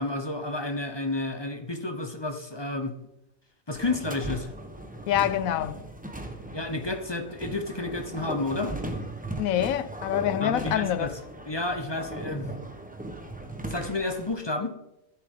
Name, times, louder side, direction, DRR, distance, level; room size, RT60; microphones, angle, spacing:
voice 1, 0.0-3.0 3.7-4.5 6.5-8.7 10.4-12.5 13.7-14.7, left 2 dB, 20° left, 0.9 m, -31 dB
sound 1, 3.7-14.3, right 1 dB, 5° right, 1.0 m, -38 dB
voice 2, 5.1-5.8 9.4-11.1, left 11 dB, 80° left, 1.1 m, -26 dB
14.5 x 10.5 x 3.8 m
omnidirectional pair, 1.4 m